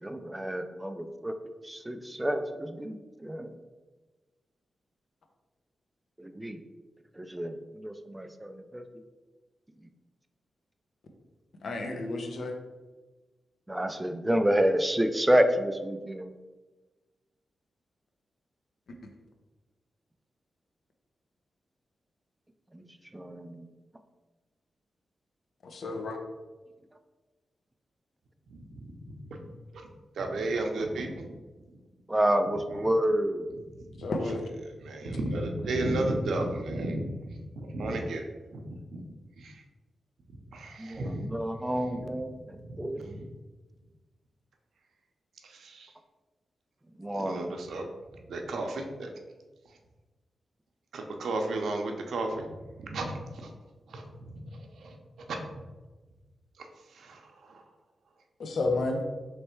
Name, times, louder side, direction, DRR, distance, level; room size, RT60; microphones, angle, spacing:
voice 1, 0.0-1.3 1.6-3.0 3.2-3.5 6.2-6.6 7.2-8.8 13.7-16.3 22.7-22.8 23.1-23.7 32.1-33.4 40.8-43.2 47.0-47.5, equal, 10° right, 7 dB, 0.3 m, -29 dB
voice 2, 11.6-12.5 25.6-26.2 34.0-34.4 58.4-59.0, left 2 dB, 65° left, 3 dB, 0.6 m, -31 dB
voice 3, 30.2-31.2 34.8-37.0 37.6-38.6 38.9-39.0 39.4-39.5 40.5-41.2 45.7-45.9 47.1-47.8 48.3-49.1 50.9-52.5 52.9-53.5 53.9-54.0 54.8-54.9 55.3-55.4 57.1-57.2, right 2 dB, 90° right, 3 dB, 0.6 m, -32 dB
3.2 x 3.2 x 4.4 m, 1.2 s
wide cardioid pair, 145°, 0 cm